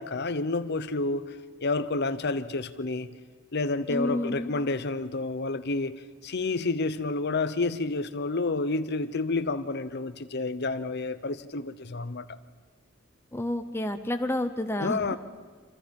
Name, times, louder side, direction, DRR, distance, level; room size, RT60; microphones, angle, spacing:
voice 1, 0.0-1.4 1.6-3.1 3.5-12.4 14.8-15.2, left 3 dB, 55° left, 0.9 m, -29 dB
voice 2, 3.9-4.5 13.3-15.0, left 1 dB, 10° left, 0.9 m, -30 dB
27.5 x 26.5 x 5.4 m
head